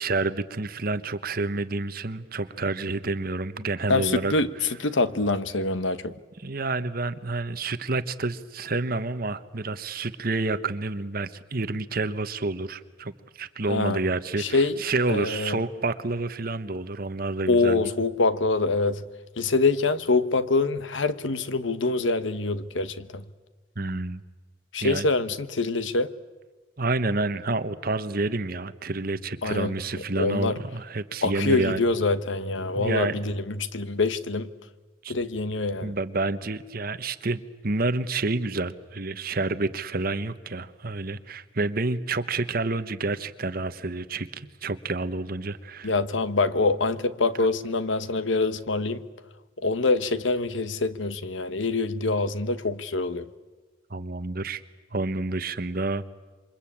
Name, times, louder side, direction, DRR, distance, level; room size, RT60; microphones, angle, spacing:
voice 1, 0.0-4.3 6.4-17.9 23.8-24.2 24.8-25.1 26.8-31.8 32.8-33.2 35.0-35.1 35.8-45.9 53.9-54.6 54.9-56.1, right 3 dB, 50° right, 1.1 m, -29 dB
voice 2, 3.9-6.1 13.7-14.0 14.4-14.8 15.1-15.6 17.5-19.0 19.4-23.2 24.7-26.1 29.4-29.7 30.2-30.6 31.2-34.5 35.1-35.9 45.8-49.0 49.6-53.3, left 3 dB, 75° left, 1.2 m, -25 dB
27.5 x 24.5 x 8.7 m
head